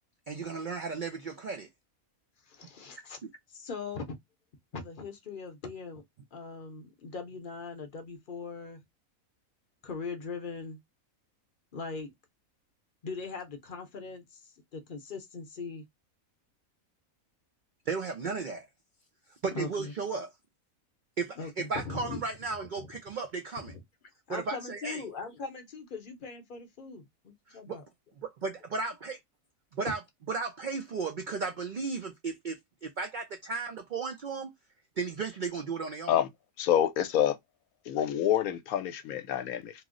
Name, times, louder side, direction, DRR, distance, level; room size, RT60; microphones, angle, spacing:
voice 1, 0.3-1.7 17.9-18.7 19.4-20.3 21.2-23.7 24.3-25.0 27.5-27.8 28.4-29.2 29.8-30.0 30.3-34.5 35.0-36.2, right 4 dB, 80° right, 0.4 m, -35 dB
voice 2, 2.4-3.2 3.5-4.2 4.7-6.0 6.3-8.8 9.8-10.8 11.7-12.1 13.0-15.8 19.5-19.9 21.4-22.2 22.8-22.9 23.7-23.8 24.3-27.8 29.8-29.9, left 4 dB, 50° left, 0.7 m, -40 dB
voice 3, 36.6-37.4 37.9-39.7, left 10 dB, 80° left, 1.0 m, -27 dB
2.9 x 2.0 x 3.6 m
omnidirectional pair, 1.5 m